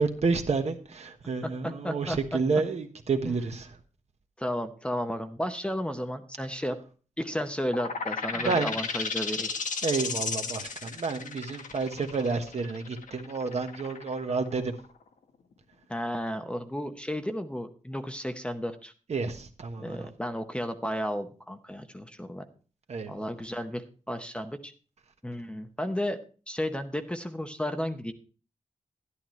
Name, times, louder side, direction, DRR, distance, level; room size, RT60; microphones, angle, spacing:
voice 1, 0.0-3.7 8.3-8.7 9.8-14.7 19.1-20.1 22.9-23.1, right 4 dB, 55° right, 1.3 m, -30 dB
voice 2, 1.4-2.4 3.2-3.3 4.4-6.8 7.2-9.5 15.9-18.9 19.8-22.4 23.1-24.7 25.2-26.2 26.5-28.1, equal, 10° left, 0.8 m, -33 dB
sound 1, 7.7-15.0, left 5 dB, 80° left, 1.3 m, -34 dB
12.0 x 11.5 x 3.1 m
wide cardioid pair, 140°, 13 cm